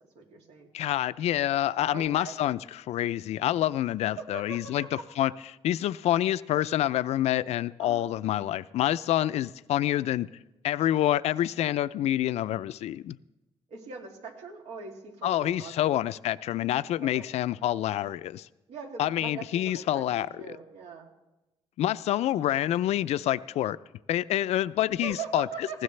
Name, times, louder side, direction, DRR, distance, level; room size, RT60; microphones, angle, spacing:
voice 1, 0.1-0.7 1.9-2.3 4.3-4.9 7.8-8.1 13.7-15.9 17.1-17.3 18.7-21.1 25.0-25.8, right 5 dB, 85° right, 2.6 m, -41 dB
voice 2, 0.7-5.3 5.6-10.3 10.6-13.2 15.2-18.5 19.0-20.3 21.8-23.8 24.1-25.8, left 12 dB, 80° left, 0.4 m, -27 dB
19.5 x 16.0 x 3.3 m
cardioid pair, 140°, 11 cm